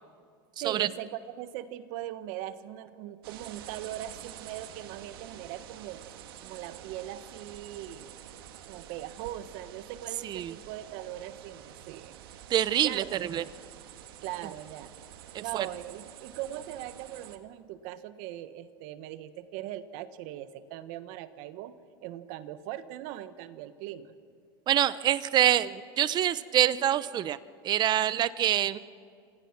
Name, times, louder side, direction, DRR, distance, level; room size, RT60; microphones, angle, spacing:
voice 1, 0.6-6.0 6.4-8.2 8.7-12.2 12.8-13.1 13.4-13.5 14.2-14.9 15.4-21.7 22.0-24.1, right 13 dB, 65° right, 12 dB, 1.3 m, -40 dB
sound 1, 3.2-17.4, right 11 dB, 85° right, 1.7 m, -48 dB
voice 2, 10.2-10.5 12.5-13.4 15.3-15.7 24.7-27.4 27.6-28.8, right 11 dB, 35° right, 17 dB, 0.8 m, -26 dB
27.0 x 26.5 x 6.1 m, 2.2 s
supercardioid pair, 125°, 12 cm